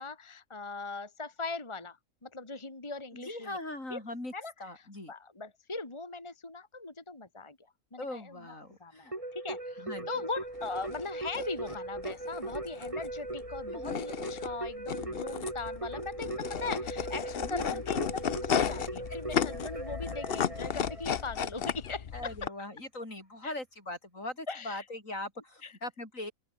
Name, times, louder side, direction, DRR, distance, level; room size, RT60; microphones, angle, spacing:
voice 1, 0.0-3.6 3.9-4.0 4.3-7.6 7.9-8.5 8.8-22.5 23.4-23.5 24.5-24.8 25.6-25.7, left 3 dB, 20° left, 2.0 m, -40 dB
voice 2, 3.1-4.3 4.6-5.1 8.0-9.1 9.8-10.1 13.7-14.0 17.4-17.8 22.1-26.3, left 2 dB, 70° left, 7.5 m, -40 dB
Keyboard (musical), 9.1-21.6, right 2 dB, 25° right, 3.1 m, -39 dB
sound 1, 10.5-22.5, left 8 dB, 50° left, 1.0 m, -35 dB
open air
omnidirectional pair, 1.4 m